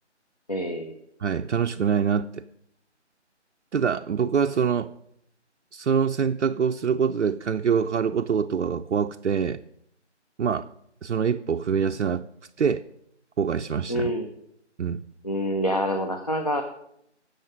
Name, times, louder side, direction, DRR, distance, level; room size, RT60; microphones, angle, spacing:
voice 1, 0.5-0.9 10.4-10.5 13.9-14.3 15.2-16.6, equal, 35° left, 4 dB, 0.7 m, -26 dB
voice 2, 1.2-2.3 3.7-4.9 5.7-9.6 10.4-10.7 11.0-12.2 12.6-12.8 13.4-14.1 14.8-15.0, right 7 dB, 75° right, 6 dB, 0.5 m, -24 dB
9.2 x 6.5 x 6.4 m, 0.74 s
figure-of-eight pair, 170°, 36 cm